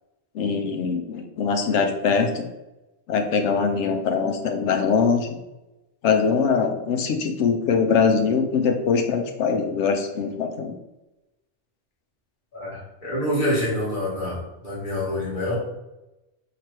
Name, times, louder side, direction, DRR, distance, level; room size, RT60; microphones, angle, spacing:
voice 1, 0.3-2.4 3.1-5.3 6.0-10.7, left 5 dB, 80° left, 5 dB, 0.9 m, -22 dB
voice 2, 12.5-14.4 14.6-15.6, left 1 dB, 45° left, -7 dB, 1.6 m, -26 dB
3.0 x 2.9 x 4.5 m, 0.98 s
omnidirectional pair, 1.2 m